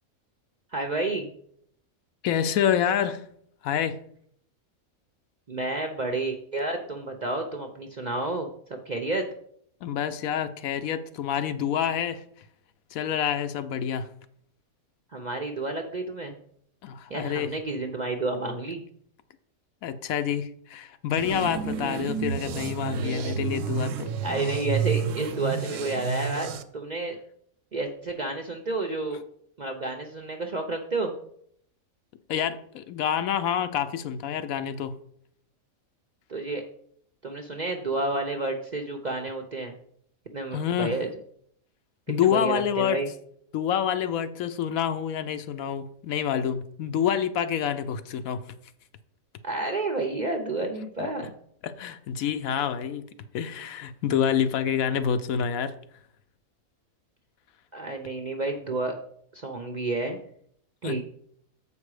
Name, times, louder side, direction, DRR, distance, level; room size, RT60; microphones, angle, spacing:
voice 1, 0.7-1.3 5.5-9.3 15.1-16.3 17.1-18.8 24.2-27.2 27.7-29.2 29.6-31.1 36.3-36.6 37.2-39.7 40.3-41.1 42.2-43.1 49.4-51.3 57.7-59.0 59.3-60.2 60.8-61.0, right 2 dB, 45° right, 4 dB, 0.6 m, -30 dB
voice 2, 2.2-3.2 3.6-4.0 9.8-12.2 12.9-14.1 16.8-17.5 19.8-24.1 32.3-35.0 40.5-40.9 42.1-43.0 43.5-48.4 51.0-51.1 51.6-53.0 53.3-55.7 60.8-61.0, left 8 dB, 75° left, 11 dB, 1.0 m, -27 dB
sound 1, 21.2-26.6, right 7 dB, 70° right, 0.9 m, -30 dB
7.3 x 5.3 x 4.8 m, 0.67 s
omnidirectional pair, 1.5 m